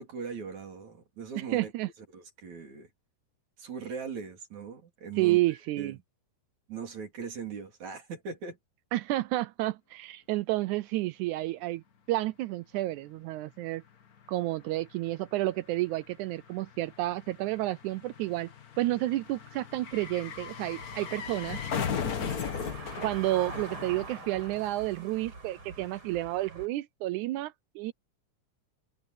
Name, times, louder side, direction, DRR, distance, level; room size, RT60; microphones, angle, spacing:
voice 1, 0.0-1.7 2.1-2.9 3.6-5.4 5.8-6.0 6.7-8.6, right 6 dB, 60° right, 4.8 m, -40 dB
voice 2, 1.3-1.9 5.2-6.0 8.9-11.8 12.1-13.8 14.3-18.5 18.8-21.6 23.0-27.9, right 17 dB, 80° right, 1.8 m, -30 dB
sound 1, 13.8-13.9 14.1-24.5 24.7-24.8, left 7 dB, 85° left, 0.8 m, -38 dB
Car passing by / Engine, 19.9-26.7, right 3 dB, 35° right, 7.6 m, -45 dB
omnidirectional pair, 3.9 m